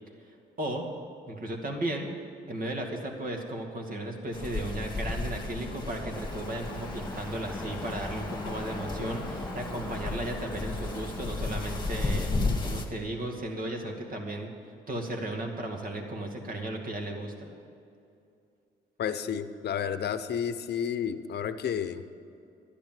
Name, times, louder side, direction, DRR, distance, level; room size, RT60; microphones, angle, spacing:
voice 1, 0.2-0.8 1.3-2.1 2.5-12.3 12.6-14.5 14.9-17.5, right 1 dB, 45° right, 2 dB, 2.3 m, -35 dB
sound 1, 4.3-12.9, left 3 dB, 20° left, 2.0 m, -34 dB
Cricket / Motor vehicle (road), 6.1-12.4, left 1 dB, ahead, 1.1 m, -44 dB
voice 2, 19.0-22.0, left 8 dB, 55° left, 11 dB, 0.8 m, -31 dB
12.0 x 10.0 x 7.7 m, 2.5 s
cardioid pair, 90°, 20 cm